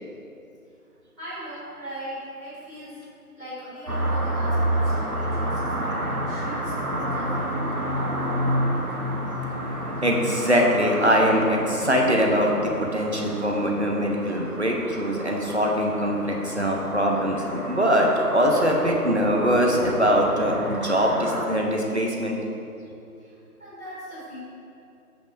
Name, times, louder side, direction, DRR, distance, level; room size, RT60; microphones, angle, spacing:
voice 1, 1.2-3.0 3.3-7.5 23.2-24.4, equal, ahead, -31 dB, 2.0 m, -39 dB
sound 1, 3.9-21.5, right 1 dB, 70° right, 1.2 m, -30 dB
voice 2, 10.0-22.4, equal, 45° right, 0 dB, 1.0 m, -22 dB
9.8 x 8.2 x 2.6 m, 2.7 s
figure-of-eight pair, 170°, 46 cm